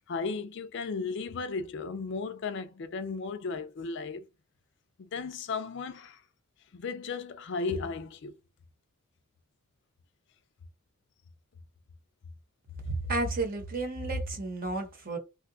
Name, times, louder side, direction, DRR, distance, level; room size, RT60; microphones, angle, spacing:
voice 1, 0.0-4.3 5.0-6.2 6.7-8.4, left 4 dB, 55° left, 0.4 m, -35 dB
voice 2, 12.8-15.2, right 2 dB, 45° right, 0.9 m, -32 dB
2.8 x 2.3 x 3.7 m
head